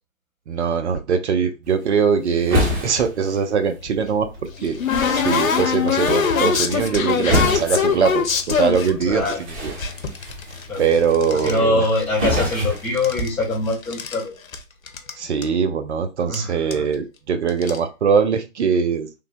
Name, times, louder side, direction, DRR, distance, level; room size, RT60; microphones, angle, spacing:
voice 1, 0.5-4.8 5.1-9.2 9.6-9.7 10.8-11.8 15.2-19.1, right 6 dB, 60° right, 8 dB, 0.5 m, -21 dB
sound 1, 1.6-13.7, equal, 20° right, 1.1 m, -29 dB
sound 2, 3.9-9.3 9.8-11.6 11.8-12.6 12.9-14.2 14.5-14.6 14.9-15.1 15.4-15.5 16.3-16.4 16.7-16.9 17.5-17.8, left 6 dB, 85° left, 0.7 m, -23 dB
voice 2, 9.0-9.4 10.7-10.8 11.3-14.4 16.3-16.9, left 2 dB, 5° left, -8 dB, 0.7 m, -23 dB
3.3 x 2.1 x 2.5 m, 0.28 s
hypercardioid pair, 135°, 40 cm